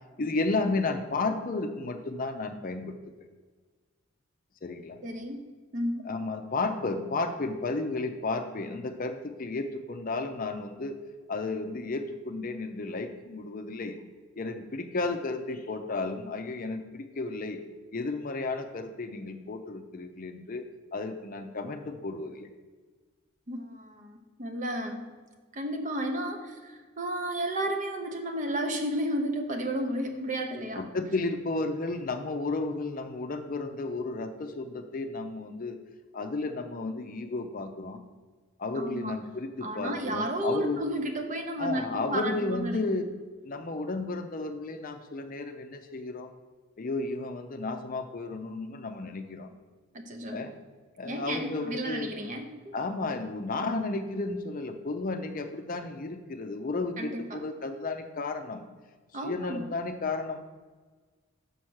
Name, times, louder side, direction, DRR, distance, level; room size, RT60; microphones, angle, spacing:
voice 1, 0.2-3.3 4.6-5.0 6.0-11.0 11.3-14.0 14.4-17.6 17.9-20.6 20.9-22.5 30.7-35.8 36.1-38.0 38.6-40.8 41.6-43.1 43.4-46.3 46.8-49.5 50.3-50.5 51.0-52.1 52.7-58.6 59.2-60.4, left 3 dB, 40° left, 7 dB, 0.5 m, -33 dB
voice 2, 5.0-5.5 5.7-6.1 23.5-25.0 25.5-30.9 38.7-39.2 39.6-42.9 49.9-50.4 51.0-52.7 57.0-57.4 59.1-59.6, right 1 dB, 40° right, 5 dB, 0.8 m, -32 dB
5.8 x 5.4 x 6.3 m, 1.4 s
head